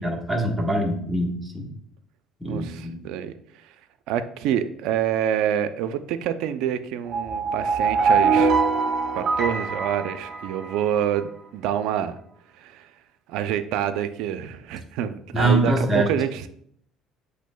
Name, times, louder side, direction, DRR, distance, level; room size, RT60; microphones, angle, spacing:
voice 1, 0.0-1.7 2.4-3.0 15.3-16.1, right 1 dB, 5° right, -1 dB, 1.2 m, -23 dB
voice 2, 2.4-3.7 4.1-8.5 9.1-12.2 12.5-12.9 13.3-16.5, right 10 dB, 75° right, 11 dB, 0.4 m, -27 dB
sound 1, 7.0-11.0, right 5 dB, 45° right, 1.2 m, -23 dB
7.3 x 3.3 x 2.2 m, 0.67 s
supercardioid pair, 95°, 0 cm